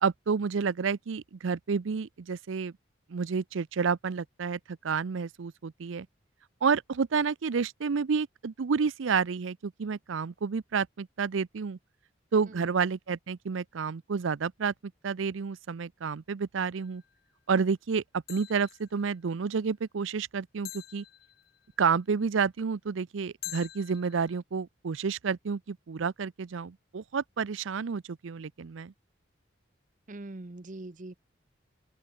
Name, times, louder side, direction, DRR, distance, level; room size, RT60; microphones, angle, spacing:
voice 1, 0.0-2.7 3.1-6.1 6.6-11.8 12.3-14.7 15.0-17.0 17.5-18.0 18.3-21.0 21.8-28.9, right 5 dB, 75° right, 0.5 m, -30 dB
sound 1, 16.8-17.1 18.3-19.0 20.7-21.7 23.4-24.4, left 16 dB, 50° left, 0.5 m, -45 dB
voice 2, 30.1-31.1, right 2 dB, 40° right, 0.8 m, -42 dB
open air
head